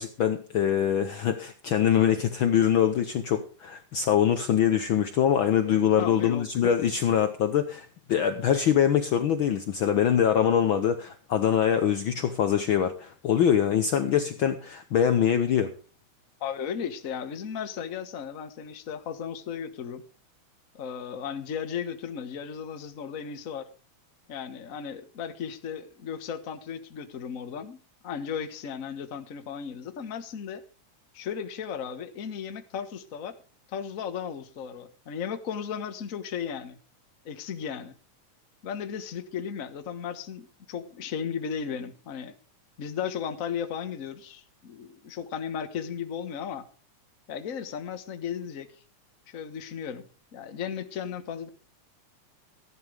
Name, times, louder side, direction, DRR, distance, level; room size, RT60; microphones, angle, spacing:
voice 1, 0.0-15.7, left 9 dB, 85° left, 9 dB, 1.1 m, -24 dB
voice 2, 6.0-6.7 16.4-20.0 20.7-23.7 24.3-27.8 28.0-30.6 31.1-33.3 33.7-36.8 37.2-37.9 38.6-42.3 42.8-46.7 47.3-48.7 49.3-50.1 50.3-51.5, left 7 dB, 55° left, 9 dB, 0.9 m, -35 dB
14.5 x 11.0 x 5.1 m, 0.37 s
omnidirectional pair, 3.5 m